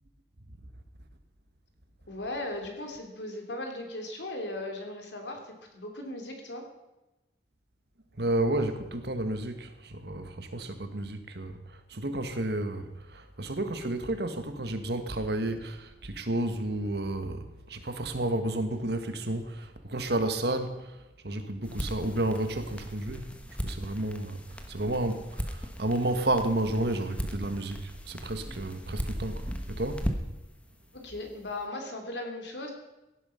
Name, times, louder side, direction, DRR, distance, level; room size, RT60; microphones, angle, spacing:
voice 1, 2.1-6.7 30.9-32.7, left 1 dB, 80° left, 3 dB, 2.9 m, -37 dB
voice 2, 8.2-11.6 11.9-20.9 21.2-23.3 23.6-24.4 24.7-29.4 29.7-30.1, right 1 dB, 65° right, 8 dB, 1.5 m, -31 dB
sound 1, 21.6-30.5, equal, 5° left, 1.2 m, -37 dB
16.5 x 11.0 x 5.7 m, 1.0 s
head